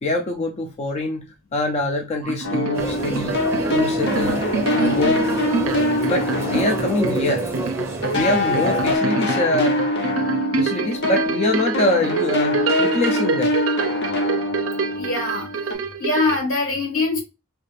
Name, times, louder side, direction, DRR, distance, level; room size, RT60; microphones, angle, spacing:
voice 1, 0.0-1.3 1.5-3.4 3.7-4.5 4.7-5.2 6.1-7.4 8.1-9.8 10.6-13.6, left 1 dB, 35° left, 0.4 m, -24 dB
sound 1, 2.2-16.4, right 4 dB, 75° right, 0.4 m, -27 dB
sound 2, 2.4-7.7 8.0-15.7, left 2 dB, 55° left, 0.8 m, -24 dB
sound 3, 2.7-9.0, right 2 dB, 15° right, 0.7 m, -29 dB
voice 2, 15.0-17.2, left 3 dB, 75° left, 1.6 m, -23 dB
3.3 x 2.4 x 3.0 m
head